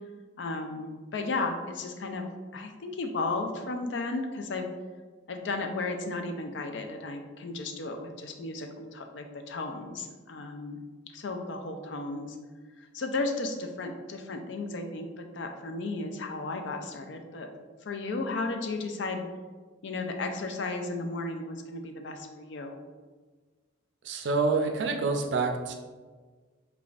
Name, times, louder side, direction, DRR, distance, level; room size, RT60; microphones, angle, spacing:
voice 1, 0.4-2.3 2.5-4.7 5.3-10.8 11.1-12.4 12.8-17.5 17.8-19.3 19.8-22.8, left 3 dB, 70° left, 5 dB, 0.4 m, -34 dB
voice 2, 24.0-25.7, right 3 dB, 65° right, 3 dB, 0.4 m, -27 dB
5.0 x 2.4 x 2.4 m, 1.4 s
head